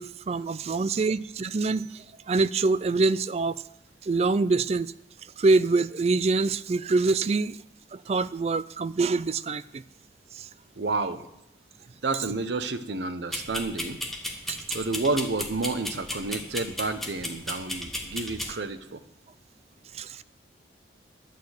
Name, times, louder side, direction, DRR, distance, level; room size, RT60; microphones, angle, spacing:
voice 1, 0.0-3.6 4.0-4.9 5.4-7.6 7.9-9.8 10.4-10.5 14.5-14.6 19.9-20.2, right 3 dB, 35° right, 0.3 m, -25 dB
voice 2, 10.8-11.3 12.0-14.0 14.7-19.0, right 3 dB, 75° right, 0.8 m, -30 dB
sound 1, 13.3-18.6, left 1 dB, ahead, 1.0 m, -35 dB
11.5 x 6.7 x 8.0 m
head